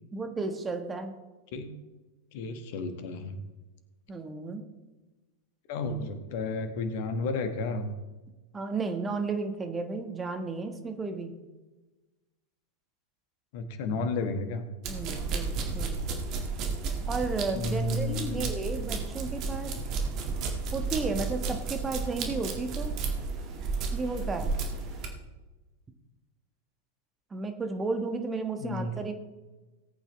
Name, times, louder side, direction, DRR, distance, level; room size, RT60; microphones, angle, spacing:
voice 1, 0.1-1.1 4.1-4.6 8.5-11.3 14.9-16.0 17.1-19.7 20.7-22.9 23.9-24.5 27.3-29.1, right 3 dB, 15° right, 6 dB, 1.3 m, -33 dB
voice 2, 2.3-3.4 5.7-7.9 13.5-14.7 17.5-18.5 28.6-29.1, left 3 dB, 50° left, 8 dB, 1.5 m, -32 dB
sound 1, 14.8-25.1, right 4 dB, 35° right, 1.9 m, -33 dB
18.5 x 8.8 x 3.2 m, 1.2 s
figure-of-eight pair, 90°, 0 cm